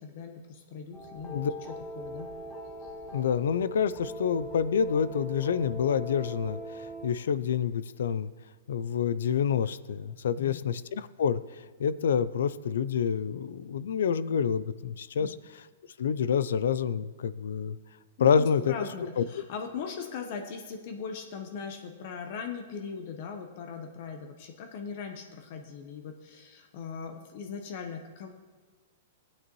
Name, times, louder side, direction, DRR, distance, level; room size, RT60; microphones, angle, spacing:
voice 1, 0.0-2.3 2.8-2.9 10.3-10.6 15.1-15.3 18.2-28.3, left 6 dB, 45° left, 4 dB, 0.9 m, -40 dB
sound 1, 0.9-7.1, equal, 15° left, 1.0 m, -41 dB
voice 2, 3.1-8.3 8.7-15.4 16.0-17.8 18.2-18.7 19.2-19.3, left 7 dB, 80° left, 16 dB, 0.4 m, -28 dB
15.5 x 8.8 x 3.1 m, 1.3 s
hypercardioid pair, 160°, 0 cm